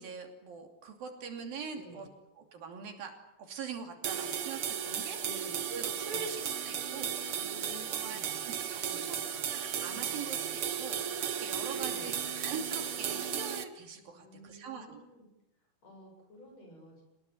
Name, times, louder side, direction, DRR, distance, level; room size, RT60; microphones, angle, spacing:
voice 1, 0.0-2.1 2.5-3.1 3.4-7.1 7.9-8.2 8.7-9.2 9.5-15.0, right 5 dB, 75° right, 4 dB, 4.6 m, -43 dB
voice 2, 1.7-2.1 5.2-5.6 6.1-6.3 7.3-8.4 8.8-9.5 11.7-12.3 14.1-15.3 15.8-17.0, left 1 dB, 45° left, 2 dB, 9.1 m, -51 dB
sound 1, 4.0-13.6, right 8 dB, 60° right, 1.5 m, -35 dB
27.5 x 20.0 x 9.3 m, 0.93 s
omnidirectional pair, 4.2 m